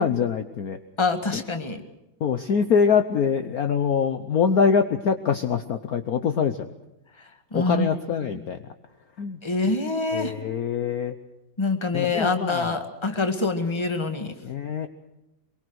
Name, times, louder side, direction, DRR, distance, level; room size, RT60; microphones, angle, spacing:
voice 1, 0.0-0.8 1.3-1.4 2.2-6.7 7.5-8.6 9.2-9.4 10.1-11.1 11.9-12.8 14.4-14.9, left 6 dB, 55° left, 8 dB, 1.2 m, -24 dB
voice 2, 1.0-1.8 7.5-7.9 8.3-8.5 9.4-10.3 11.6-14.3, left 3 dB, 15° left, 7 dB, 1.7 m, -25 dB
23.5 x 23.0 x 6.4 m, 0.95 s
omnidirectional pair, 2.1 m